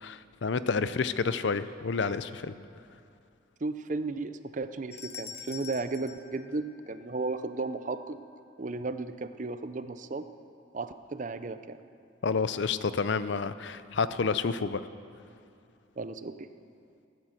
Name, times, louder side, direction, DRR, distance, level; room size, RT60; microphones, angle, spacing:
voice 1, 0.0-2.5 12.2-14.8, left 5 dB, 65° left, 13 dB, 0.5 m, -29 dB
voice 2, 3.6-8.2 8.6-10.2 10.7-11.8 16.0-16.5, right 3 dB, 40° right, 11 dB, 0.5 m, -34 dB
sound 1, 4.9-7.3, left 7 dB, 35° left, 1.2 m, -45 dB
18.5 x 9.1 x 7.5 m, 2.5 s
head